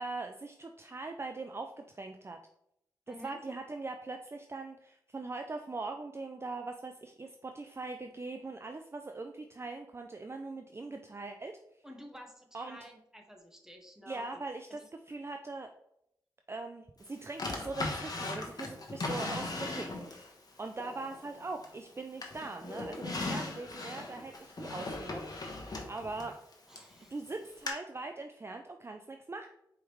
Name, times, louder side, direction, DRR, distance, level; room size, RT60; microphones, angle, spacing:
voice 1, 0.0-2.4 3.1-11.6 12.5-12.8 14.1-14.8 15.1-15.7 16.5-25.2 25.5-26.3 27.1-29.5, right 3 dB, 30° right, 5 dB, 0.4 m, -41 dB
voice 2, 3.1-3.4 11.8-14.4 14.7-14.9 19.0-19.2 23.3-23.5 26.7-27.1, equal, 5° right, 2 dB, 1.1 m, -51 dB
Drawer open or close, 17.4-20.3 20.8-21.9 22.2-26.9 27.7-27.8, left 2 dB, 45° left, 1.2 m, -38 dB
4.7 x 3.5 x 3.1 m, 0.78 s
cardioid pair, 45°, 9 cm